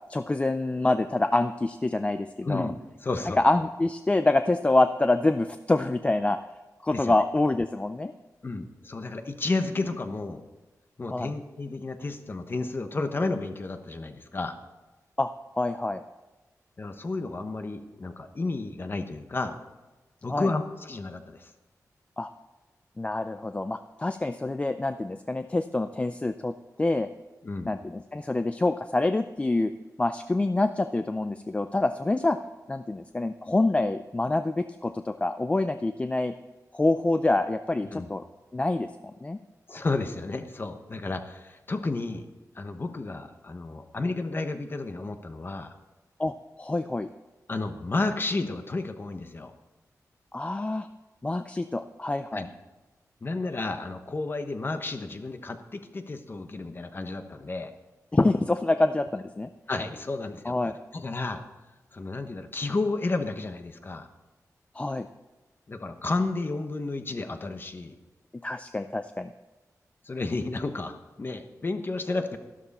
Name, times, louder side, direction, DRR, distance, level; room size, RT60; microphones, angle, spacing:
voice 1, 0.1-2.7 3.4-6.4 6.8-8.1 11.1-11.3 15.2-15.3 15.6-16.0 20.3-20.5 22.2-22.3 23.0-26.5 26.8-27.1 27.7-29.7 30.0-32.4 32.7-36.3 36.7-38.2 38.5-39.4 46.2-47.1 50.3-50.9 51.2-52.5 58.1-59.5 60.5-60.7 64.7-65.1 68.4-69.3, left 2 dB, 20° left, 8 dB, 0.4 m, -26 dB
voice 2, 2.4-3.4 6.9-7.1 8.4-10.4 11.0-14.6 16.8-19.6 20.2-21.5 27.4-27.7 37.8-38.1 39.7-42.3 42.5-45.7 47.5-49.5 52.3-52.5 53.2-57.7 59.7-60.5 60.9-61.4 61.9-64.1 65.7-67.9 70.0-72.4, left 3 dB, 35° left, 7 dB, 1.0 m, -32 dB
13.0 x 12.5 x 4.2 m, 1.1 s
wide cardioid pair, 140°, 6 cm